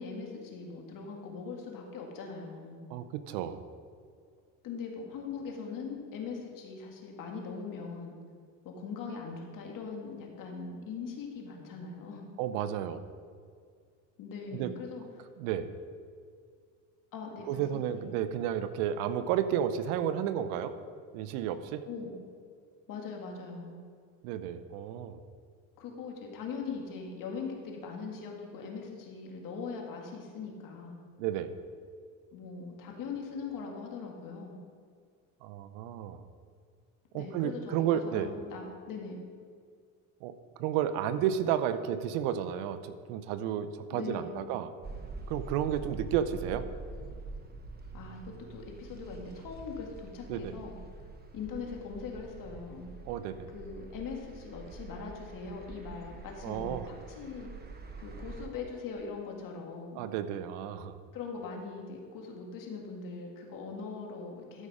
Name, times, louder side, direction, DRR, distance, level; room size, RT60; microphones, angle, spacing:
voice 1, 0.0-2.8 4.6-8.2 8.6-12.3 14.2-15.3 17.1-18.2 21.9-22.2 22.9-23.8 25.8-31.0 32.3-34.6 37.1-39.2 43.9-44.5 47.9-50.8 51.3-52.9 53.5-57.5 58.0-60.1 61.1-64.7, left 5 dB, 55° left, 1 dB, 2.2 m, -41 dB
voice 2, 2.9-3.6 12.4-13.0 14.5-14.7 15.4-15.7 17.5-20.7 21.1-21.8 24.2-25.2 31.2-31.5 35.4-36.2 37.1-38.3 40.2-40.3 40.6-44.7 45.3-46.6 50.3-50.5 53.1-53.5 56.4-56.9 59.9-61.0, right 10 dB, 85° right, 12 dB, 0.8 m, -32 dB
sound 1, 44.8-58.5, right 3 dB, 25° right, 1.1 m, -45 dB
13.0 x 5.5 x 5.0 m, 2.1 s
supercardioid pair, 105°, 38 cm